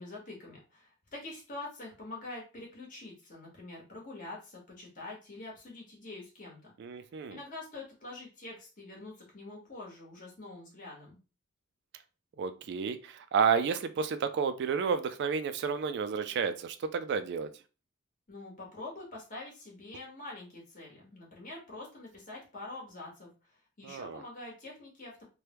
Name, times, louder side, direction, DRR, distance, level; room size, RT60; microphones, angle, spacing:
voice 1, 0.0-6.7 7.3-11.2 18.3-23.3 23.8-25.2, left 2 dB, 40° left, -3 dB, 1.3 m, -45 dB
voice 2, 6.8-7.4 12.4-17.5 23.8-24.2, right 6 dB, 55° right, 10 dB, 0.3 m, -31 dB
3.3 x 2.2 x 2.9 m, 0.33 s
head